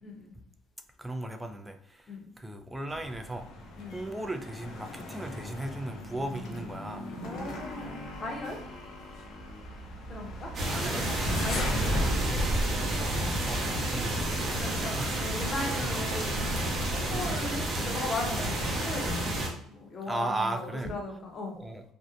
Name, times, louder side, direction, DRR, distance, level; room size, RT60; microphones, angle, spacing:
voice 1, 0.0-0.3 2.1-2.3 3.8-4.0 7.2-8.6 10.1-10.5 10.8-12.1 14.5-21.6, left 2 dB, 40° left, 0.8 m, -38 dB
voice 2, 1.0-3.5 3.8-7.1 10.6-11.1 13.5-14.6 15.0-15.3 15.8-15.9 17.1-17.3 20.1-20.9 21.6-21.8, right 2 dB, 10° right, 0.3 m, -36 dB
sound 1, 2.9-15.6, equal, 65° left, 0.5 m, -36 dB
sound 2, 10.5-19.5, right 1 dB, 45° right, 0.7 m, -30 dB
2.6 x 2.1 x 2.4 m
supercardioid pair, 90°, 0 cm